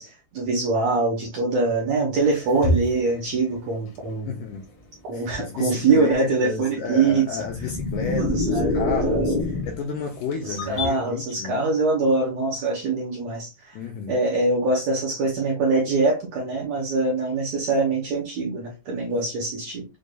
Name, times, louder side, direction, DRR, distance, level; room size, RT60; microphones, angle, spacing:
voice 1, 0.0-4.3 5.1-7.3 8.1-8.7 9.0-9.4 10.5-13.8 14.1-19.8, right 3 dB, 70° right, 1.7 m, -23 dB
sound 1, 2.1-10.9, left 1 dB, 60° left, 1.7 m, -35 dB
voice 2, 4.3-4.6 5.1-11.6 13.7-14.2 19.1-19.3, left 5 dB, 80° left, 1.9 m, -32 dB
sound 2, 7.4-9.9, left 2 dB, 90° right, 0.5 m, -25 dB
6.4 x 2.5 x 2.2 m
omnidirectional pair, 4.2 m